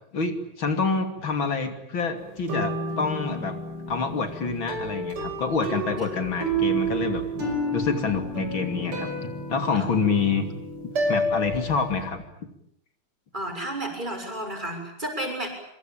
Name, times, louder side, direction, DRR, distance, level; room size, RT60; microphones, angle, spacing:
voice 1, 0.1-3.6 3.9-10.5 11.1-12.2, left 4 dB, 65° left, 8 dB, 3.6 m, -27 dB
sound 1, 2.2-12.1, right 1 dB, 90° right, 6.7 m, -30 dB
voice 2, 13.3-15.5, right 1 dB, 20° right, 4 dB, 6.9 m, -32 dB
25.5 x 25.0 x 8.9 m, 0.72 s
omnidirectional pair, 2.4 m